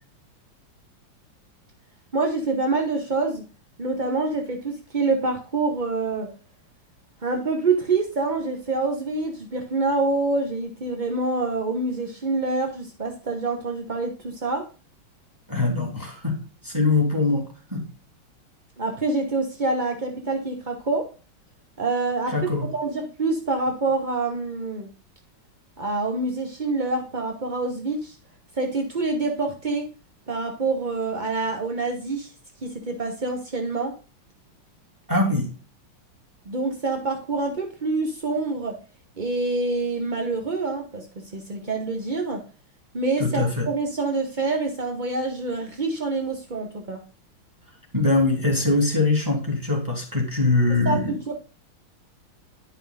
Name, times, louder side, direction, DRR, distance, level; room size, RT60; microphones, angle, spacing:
voice 1, 2.1-3.5 3.8-6.3 7.2-14.7 18.8-21.1 21.8-24.9 25.8-28.2 28.5-29.9 30.3-32.3 32.6-33.9 36.4-38.8 39.2-42.4 42.9-47.0 50.7-51.4, right 3 dB, 40° right, 3 dB, 0.6 m, -26 dB
voice 2, 15.5-16.4 16.6-17.4 17.7-17.8 22.3-22.7 35.1-35.5 43.2-43.7 47.9-51.1, left 3 dB, 10° right, 1 dB, 2.7 m, -22 dB
10.0 x 5.6 x 4.0 m, 0.35 s
omnidirectional pair, 2.3 m